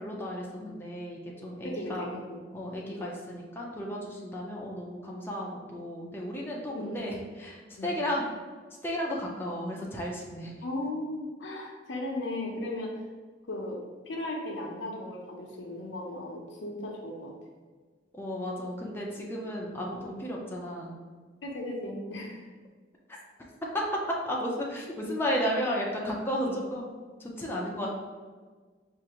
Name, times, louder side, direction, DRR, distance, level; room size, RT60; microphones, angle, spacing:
voice 1, 0.0-2.1 2.5-8.2 8.8-10.5 18.1-20.9 23.7-23.8 24.2-26.9 27.2-28.0, equal, 10° left, -3 dB, 0.5 m, -33 dB
voice 2, 1.6-2.4 2.9-3.1 6.7-7.1 7.8-8.0 10.6-12.9 13.5-13.8 14.1-17.3 19.9-20.0 21.4-22.4 26.4-26.6, left 1 dB, 85° left, 0 dB, 0.7 m, -36 dB
4.7 x 2.5 x 2.9 m, 1.5 s
head